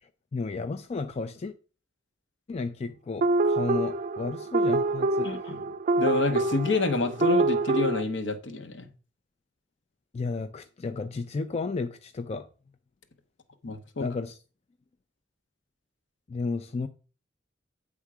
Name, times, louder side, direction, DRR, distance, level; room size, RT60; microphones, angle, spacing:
voice 1, 0.0-1.5 2.5-5.5 10.1-12.5 14.0-14.4 16.3-16.9, left 4 dB, 35° left, 0.4 m, -33 dB
sound 1, 3.2-8.0, right 2 dB, 40° right, 0.4 m, -26 dB
voice 2, 5.2-5.6 6.0-8.9 13.6-14.1, left 2 dB, 70° left, 0.9 m, -28 dB
8.4 x 3.6 x 4.8 m
head